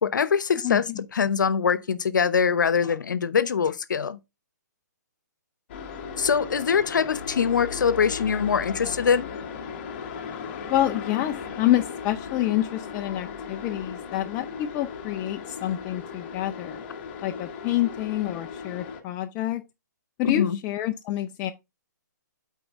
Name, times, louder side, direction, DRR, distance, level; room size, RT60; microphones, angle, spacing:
voice 1, 0.0-4.2 6.2-9.3 20.2-20.6, left 6 dB, 80° left, 0.8 m, -23 dB
sound 1, 5.7-19.0, left 6 dB, 35° left, 1.0 m, -37 dB
voice 2, 10.7-16.8 17.2-19.6 20.2-21.5, left 13 dB, 20° left, 0.3 m, -27 dB
8.1 x 4.4 x 3.5 m
hypercardioid pair, 155°, 10 cm